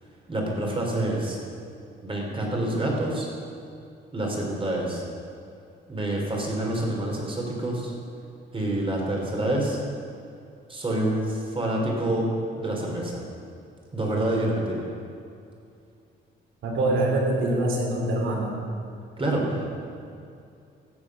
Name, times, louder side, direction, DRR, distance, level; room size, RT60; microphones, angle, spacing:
voice 1, 0.3-1.4 2.0-3.3 4.1-5.0 5.9-7.9 8.5-9.8 10.7-12.3 12.6-13.2 13.9-14.9 19.2-19.7, right 1 dB, 25° right, -1 dB, 3.6 m, -27 dB
voice 2, 16.6-18.5, right 1 dB, 80° right, -1 dB, 2.8 m, -24 dB
16.5 x 7.3 x 6.1 m, 2.5 s
cardioid pair, 90°, 20 cm